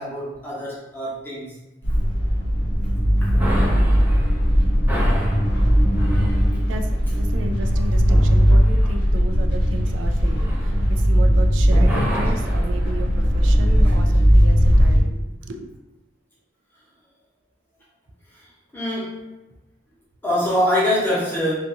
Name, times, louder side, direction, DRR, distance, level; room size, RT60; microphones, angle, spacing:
voice 1, 0.0-1.4 3.2-3.4 18.7-19.2 20.2-21.5, left 1 dB, 10° left, -8 dB, 0.9 m, -24 dB
sound 1, 1.8-15.0, equal, 65° left, 0.7 m, -18 dB
sound 2, 3.3-11.4 11.7-14.0, equal, 10° right, 0.5 m, -31 dB
voice 2, 5.3-5.9 6.7-15.7, right 2 dB, 85° right, 6 dB, 0.3 m, -34 dB
2.6 x 2.3 x 2.6 m, 0.99 s
head